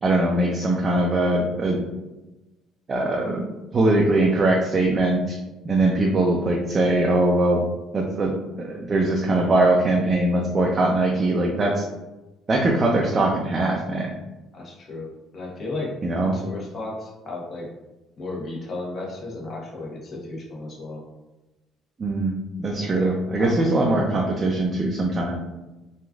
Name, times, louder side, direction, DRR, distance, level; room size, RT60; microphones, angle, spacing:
voice 1, 0.0-1.8 2.9-3.4 3.7-5.4 5.6-7.7 7.9-8.3 8.6-11.9 12.5-14.1 16.0-16.4 22.0-22.3 22.6-25.4, right 2 dB, 35° right, -1 dB, 0.4 m, -21 dB
voice 2, 14.5-17.7 18.2-21.0 22.8-24.6, left 2 dB, 45° left, -2 dB, 0.9 m, -34 dB
3.1 x 2.4 x 2.3 m, 1.1 s
supercardioid pair, 75°, 0 cm